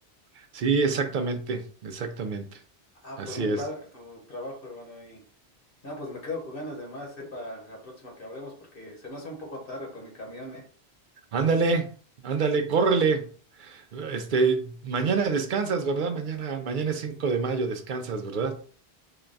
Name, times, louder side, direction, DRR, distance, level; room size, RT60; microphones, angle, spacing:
voice 1, 0.5-2.6 3.2-3.6 11.3-11.9 12.2-13.3 13.6-18.7, right 4 dB, 60° right, 0.6 m, -26 dB
voice 2, 3.0-5.2 5.8-10.6, left 1 dB, 60° left, 1.3 m, -39 dB
3.8 x 2.2 x 3.8 m
omnidirectional pair, 1.1 m